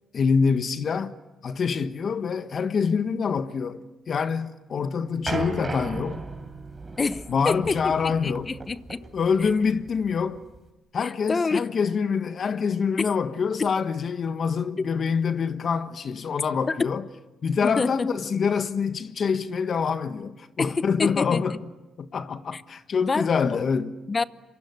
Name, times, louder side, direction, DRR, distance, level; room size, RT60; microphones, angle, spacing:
voice 1, 0.1-1.1 1.4-6.2 7.3-8.5 9.1-10.4 10.9-17.0 17.4-21.6 22.0-23.9, left 6 dB, 50° left, 1.4 m, -25 dB
sound 1, 5.3-10.7, right 3 dB, 25° right, 3.8 m, -36 dB
voice 2, 7.0-7.9 8.2-9.0 11.0-11.7 14.8-14.9 16.7-16.8 17.6-18.1 20.6-21.4 22.5-22.6 23.0-23.3 24.1-24.2, left 4 dB, 30° left, 0.9 m, -27 dB
27.0 x 24.5 x 8.2 m
cardioid pair, 90°, 0 cm